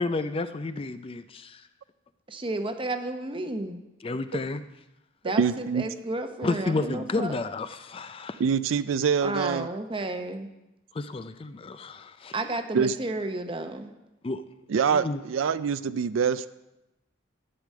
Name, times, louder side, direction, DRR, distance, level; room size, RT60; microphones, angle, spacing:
voice 1, 0.0-1.6 4.0-4.6 6.4-8.4 10.9-12.3 14.2-14.4 14.9-15.2, left 3 dB, 30° left, 11 dB, 0.4 m, -31 dB
voice 2, 2.3-3.8 5.2-7.3 9.2-10.5 12.3-13.9, right 2 dB, 25° right, 6 dB, 0.8 m, -32 dB
voice 3, 5.4-5.8 8.4-9.7 12.7-12.9 14.7-16.5, right 6 dB, 85° right, 15 dB, 0.4 m, -25 dB
11.5 x 5.1 x 7.5 m, 0.95 s
head